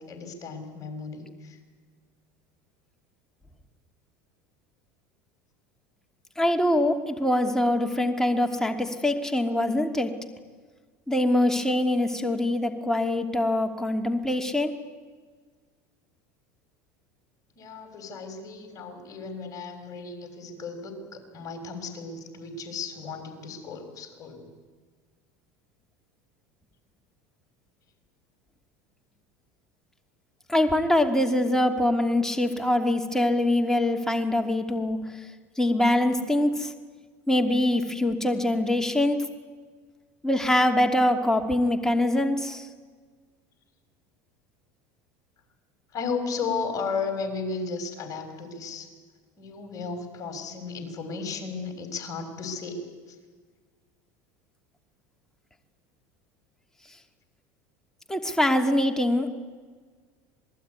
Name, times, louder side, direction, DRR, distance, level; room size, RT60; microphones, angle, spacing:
voice 1, 0.0-1.6 17.6-24.5 45.9-48.9 49.4-53.2, left 4 dB, 40° left, 6 dB, 6.1 m, -34 dB
voice 2, 6.4-10.1 11.1-14.8 30.5-35.0 35.6-36.7 37.3-39.2 40.2-42.7 58.1-59.3, left 1 dB, 5° left, 4 dB, 2.6 m, -24 dB
27.0 x 19.5 x 9.7 m, 1.5 s
supercardioid pair, 105°, 9 cm